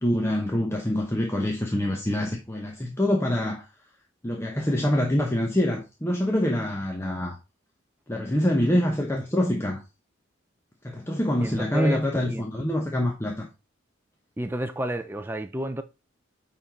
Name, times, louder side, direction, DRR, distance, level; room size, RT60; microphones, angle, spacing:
voice 1, 0.0-3.6 4.2-7.4 8.1-9.8 10.8-13.5, left 1 dB, 15° left, 0.9 m, -25 dB
voice 2, 11.4-12.4 14.4-15.8, equal, 10° right, 0.4 m, -31 dB
9.6 x 3.9 x 4.2 m
head